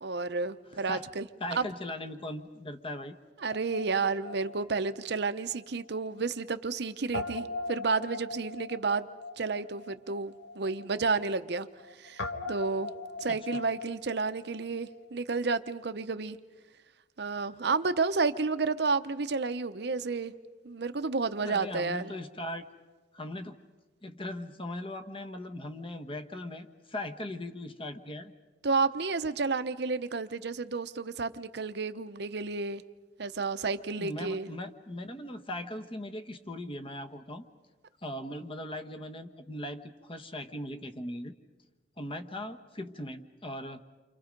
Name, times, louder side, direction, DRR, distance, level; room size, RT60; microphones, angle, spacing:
voice 1, 0.0-1.3 1.5-1.6 3.4-9.1 9.4-11.7 12.0-12.9 13.2-16.4 17.2-20.3 20.6-22.1 28.6-32.8 33.2-34.5, right 4 dB, 65° right, 10 dB, 0.8 m, -31 dB
voice 2, 0.7-1.0 1.4-3.2 13.3-13.6 21.4-22.7 23.1-23.5 24.0-28.3 34.0-37.4 38.0-41.3 42.0-43.8, left 1 dB, 30° left, 7 dB, 1.2 m, -39 dB
Guitar, 3.5-5.9 6.2-6.3 7.1-15.0, left 3 dB, 80° left, 1.6 m, -41 dB
29.5 x 26.0 x 5.3 m, 1.2 s
head